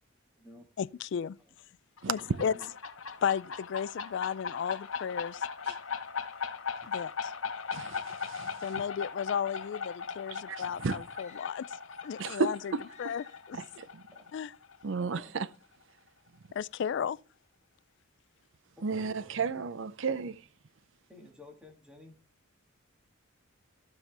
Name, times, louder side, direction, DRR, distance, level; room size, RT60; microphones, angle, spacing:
voice 1, 0.8-1.4 2.1-2.5 3.2-5.5 6.9-7.3 8.6-11.7 12.0-12.6 13.0-13.6 14.3-14.5 16.5-17.2, left 7 dB, 55° left, 0.3 m, -34 dB
sound 1, 2.0-15.4, left 6 dB, 75° left, 1.1 m, -39 dB
voice 2, 2.0-2.4 5.6-5.7 7.7-8.8 10.3-11.0 12.2-13.1 13.5-14.0 14.8-15.5 18.8-20.4, right 5 dB, 60° right, 0.5 m, -34 dB
sound 2, 11.1-12.4 12.8-13.6, left 8 dB, 35° left, 1.2 m, -55 dB
voice 3, 14.9-15.3 18.8-19.4 21.1-22.2, left 1 dB, 5° right, 1.9 m, -53 dB
15.0 x 5.6 x 3.4 m
head